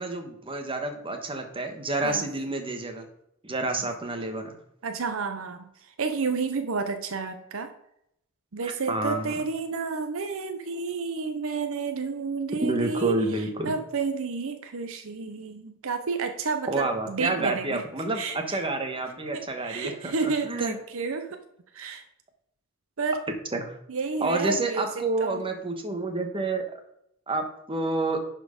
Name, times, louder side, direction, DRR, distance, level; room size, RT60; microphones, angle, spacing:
voice 1, 0.0-3.1 3.4-4.6 8.6-9.3 12.6-13.7 16.7-20.8 23.5-23.8 24.2-26.7 27.3-28.2, right 2 dB, 25° right, 5 dB, 1.2 m, -29 dB
voice 2, 4.8-5.7 6.0-7.7 8.5-13.1 13.6-17.8 18.2-18.4 19.3-21.4 21.7-22.0 23.0-23.2 23.9-24.9 25.2-25.4, right 4 dB, 70° right, 8 dB, 0.7 m, -30 dB
10.5 x 4.5 x 5.1 m, 0.76 s
head